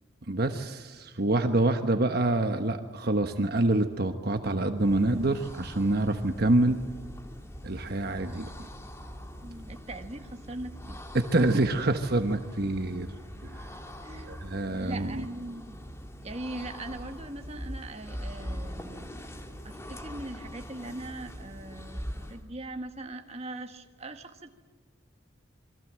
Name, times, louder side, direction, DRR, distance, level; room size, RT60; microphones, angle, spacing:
voice 1, 0.3-6.8 7.6-8.7 11.1-13.1 13.4-13.7 14.3-15.3, right 2 dB, 55° right, 6 dB, 1.2 m, -26 dB
sound 1, 4.7-22.5, equal, 15° left, 2.0 m, -42 dB
voice 2, 9.4-11.0 12.4-12.5 14.0-15.8 16.2-19.1 19.6-24.6, right 2 dB, 35° right, 6 dB, 1.6 m, -41 dB
28.0 x 23.0 x 7.5 m, 1.4 s
head